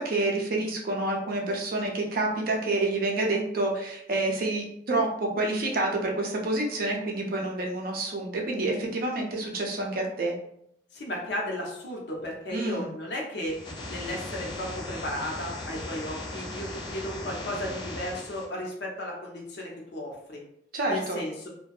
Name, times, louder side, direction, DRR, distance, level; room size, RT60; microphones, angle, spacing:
voice 1, 0.0-10.3 12.5-12.9 20.7-21.2, right 2 dB, 55° right, 0 dB, 0.5 m, -28 dB
voice 2, 10.9-13.6 13.9-20.4 20.9-21.5, left 1 dB, 70° left, -1 dB, 0.7 m, -34 dB
sound 1, 13.5-18.5, left 2 dB, 25° left, 0.4 m, -38 dB
2.6 x 2.2 x 2.3 m, 0.73 s
head